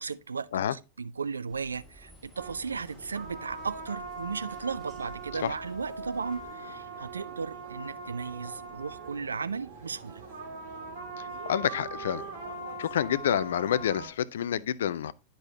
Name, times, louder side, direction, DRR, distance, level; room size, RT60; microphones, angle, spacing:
voice 1, 0.0-10.2, right 5 dB, 75° right, 0.3 m, -36 dB
sound 1, 1.5-6.5, right 1 dB, 10° right, 4.0 m, -54 dB
sound 2, 2.4-14.1, right 3 dB, 55° right, 1.7 m, -41 dB
voice 2, 11.2-12.2 12.8-15.1, left 9 dB, 60° left, 0.3 m, -28 dB
9.9 x 5.3 x 2.8 m
figure-of-eight pair, 90°, 0 cm